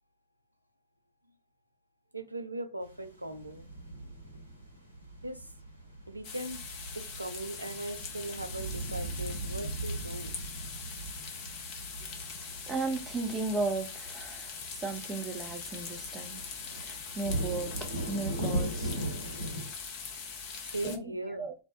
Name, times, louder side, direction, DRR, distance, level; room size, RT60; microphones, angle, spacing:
voice 1, 2.1-3.7 5.2-5.5 6.1-6.6 6.9-10.3 20.7-21.5, right 1 dB, 85° right, 0.4 m, -39 dB
sound 1, 2.8-19.7, right 1 dB, 90° left, 0.6 m, -39 dB
sound 2, 6.2-21.0, left 5 dB, 40° left, 0.6 m, -42 dB
voice 2, 12.7-16.4 16.7-17.7 18.0-19.0 20.8-21.0 21.4-21.5, right 3 dB, 20° right, 0.5 m, -35 dB
2.2 x 2.1 x 2.7 m
figure-of-eight pair, 90°, 0 cm